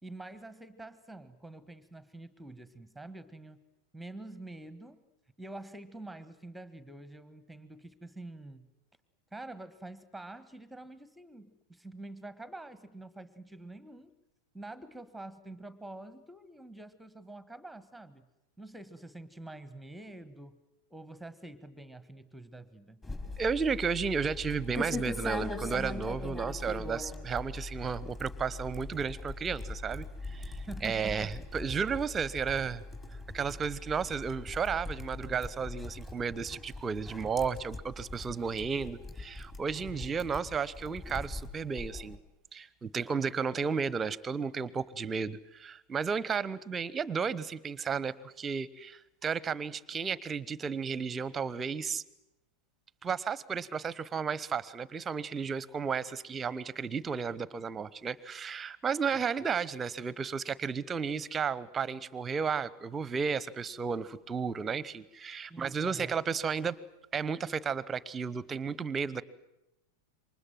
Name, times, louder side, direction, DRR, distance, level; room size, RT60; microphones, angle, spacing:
voice 1, 0.0-3.6 3.9-5.0 5.4-8.7 9.3-14.1 14.5-18.3 18.6-20.6 20.9-23.0 30.6-31.4 39.8-40.2 65.5-66.1, right 2 dB, ahead, 14 dB, 1.5 m, -46 dB
sound 1, 23.0-42.2, left 2 dB, 15° left, 3.9 m, -41 dB
voice 2, 23.4-32.8 33.3-42.2 42.5-52.0 53.0-66.8 67.1-69.2, right 6 dB, 20° right, 21 dB, 1.0 m, -33 dB
27.5 x 24.5 x 7.7 m, 0.89 s
figure-of-eight pair, 90°, 0 cm